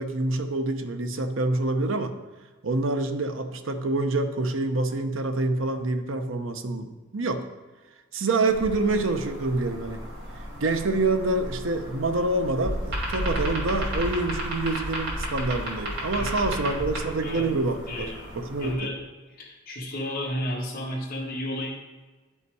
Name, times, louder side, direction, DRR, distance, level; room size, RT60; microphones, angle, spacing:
voice 1, 0.0-2.2 2.6-7.4 8.1-10.0 10.6-18.9, right 2 dB, 75° right, 8 dB, 0.7 m, -26 dB
sound 1, 8.5-18.7, equal, 60° right, 2.6 m, -33 dB
voice 2, 16.1-16.9 17.2-17.5 17.9-18.2 18.6-19.0 19.3-21.8, left 1 dB, 45° left, -5 dB, 1.5 m, -33 dB
10.0 x 5.5 x 4.7 m, 1.3 s
head